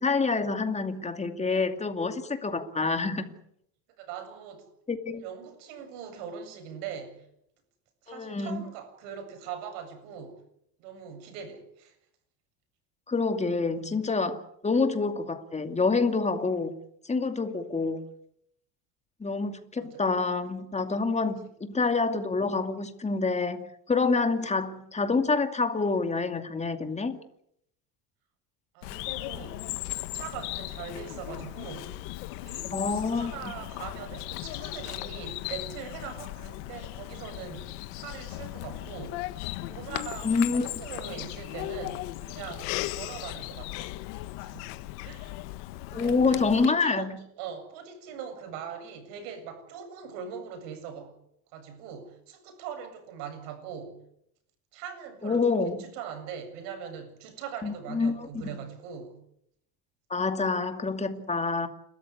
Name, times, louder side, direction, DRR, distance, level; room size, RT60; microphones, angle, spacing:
voice 1, 0.0-3.4 4.9-5.2 8.1-8.6 13.1-16.7 17.0-18.0 19.2-27.2 32.7-33.3 40.2-40.7 45.9-47.2 55.2-55.9 57.6-58.5 60.1-61.7, left 4 dB, 15° left, 8 dB, 2.4 m, -27 dB
voice 2, 4.0-4.7 5.2-7.3 8.0-10.4 10.8-11.9 19.8-20.0 24.3-24.4 28.7-29.6 29.9-31.9 32.4-39.2 39.6-43.9 44.4-44.7 45.0-45.4 45.9-47.1 47.4-51.1 51.5-54.0 54.7-55.4 55.8-59.2, right 7 dB, 80° right, 7 dB, 7.6 m, -41 dB
Bird vocalization bird call bird song, 28.8-46.7, left 18 dB, 80° left, 1.6 m, -37 dB
30.0 x 13.5 x 9.8 m, 0.75 s
cardioid pair, 125°, 45 cm